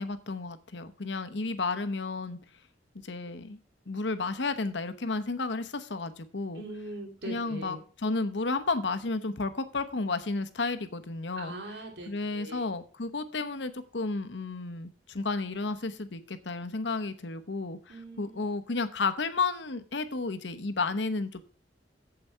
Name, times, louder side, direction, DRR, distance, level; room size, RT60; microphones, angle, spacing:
voice 1, 0.0-2.4 3.0-3.6 3.9-6.6 7.2-11.5 12.1-21.4, left 3 dB, 75° left, 9 dB, 1.0 m, -32 dB
voice 2, 6.5-7.8 11.4-12.6 17.9-18.4, right 1 dB, 65° right, 1 dB, 2.7 m, -41 dB
8.1 x 7.7 x 5.6 m, 0.41 s
head